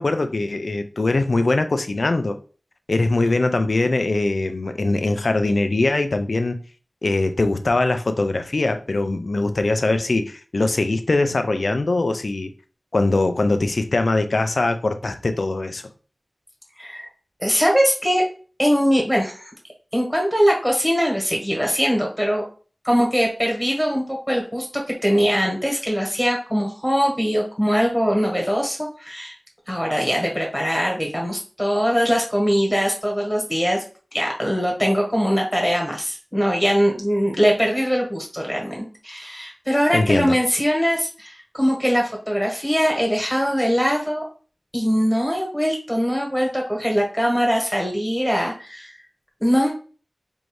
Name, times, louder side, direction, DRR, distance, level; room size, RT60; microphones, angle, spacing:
voice 1, 0.0-2.4 2.9-6.6 7.0-12.5 12.9-15.8 39.9-40.4, left 2 dB, 75° left, 0.4 m, -21 dB
voice 2, 16.8-17.1 17.4-18.2 18.6-19.5 19.9-22.4 22.8-24.7 25.0-29.3 29.7-33.8 34.1-44.2 44.7-48.9 49.4-49.7, equal, ahead, 1.4 m, -21 dB
4.5 x 2.6 x 3.2 m
wide cardioid pair, 65°, 0 cm